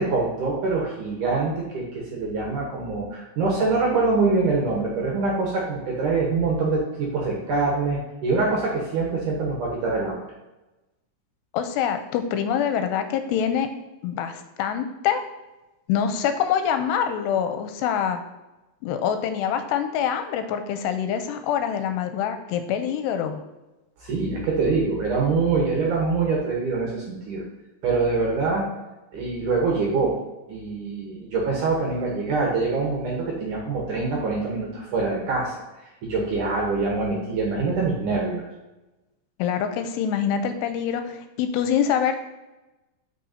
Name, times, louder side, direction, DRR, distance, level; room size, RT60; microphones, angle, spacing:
voice 1, 0.0-10.2 24.0-27.4 27.8-28.7 29.1-30.1 30.5-35.5 36.0-38.4, right 3 dB, 65° right, -2 dB, 2.1 m, -24 dB
voice 2, 11.5-13.7 14.0-15.2 15.9-18.2 18.8-23.4 39.4-42.2, left 8 dB, 85° left, 8 dB, 2.7 m, -25 dB
8.5 x 5.8 x 2.7 m, 1.0 s
omnidirectional pair, 4.9 m